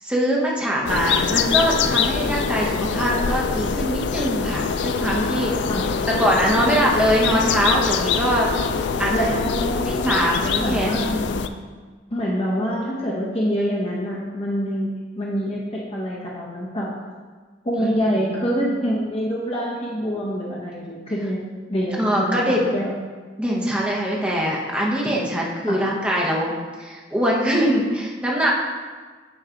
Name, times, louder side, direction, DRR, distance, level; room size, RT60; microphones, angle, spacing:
voice 1, 0.0-5.6 6.1-8.5 9.0-9.3 9.8-10.9 17.8-17.9 22.0-22.7 23.4-28.5, equal, 5° right, -3 dB, 1.0 m, -22 dB
sound 1, 0.9-11.5, left 6 dB, 65° left, 0.3 m, -24 dB
voice 2, 9.1-10.2 10.6-11.5 12.1-16.9 17.6-21.4 21.7-22.9 25.7-25.8, equal, 30° left, -4 dB, 0.9 m, -26 dB
8.7 x 3.2 x 5.0 m, 1.4 s
head